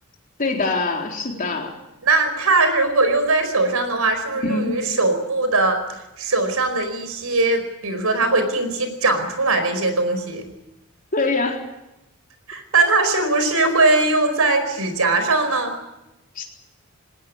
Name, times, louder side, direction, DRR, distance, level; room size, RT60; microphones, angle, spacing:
voice 1, 0.4-1.8 4.4-4.8 11.1-11.6 16.4-16.5, left 3 dB, 40° left, 1 dB, 3.9 m, -23 dB
voice 2, 2.0-10.4 12.5-15.8, right 3 dB, 90° right, 9 dB, 4.8 m, -20 dB
20.0 x 18.0 x 9.6 m, 0.92 s
head